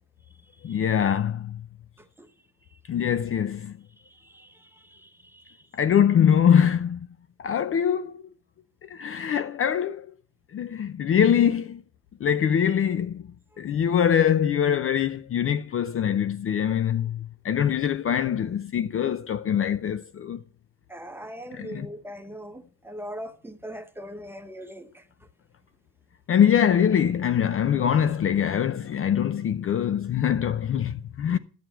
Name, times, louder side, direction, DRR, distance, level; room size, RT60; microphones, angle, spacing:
voice 1, 0.6-1.6 2.9-3.7 5.7-7.0 7.4-8.2 8.9-10.1 10.5-11.8 12.2-13.2 13.6-20.4 21.5-21.9 26.3-31.4, left 8 dB, 35° left, 0.5 m, -23 dB
voice 2, 4.0-5.6 20.9-25.0 31.3-31.4, equal, 5° right, 0.8 m, -41 dB
13.0 x 9.5 x 4.5 m
cardioid pair, 175°, 37 cm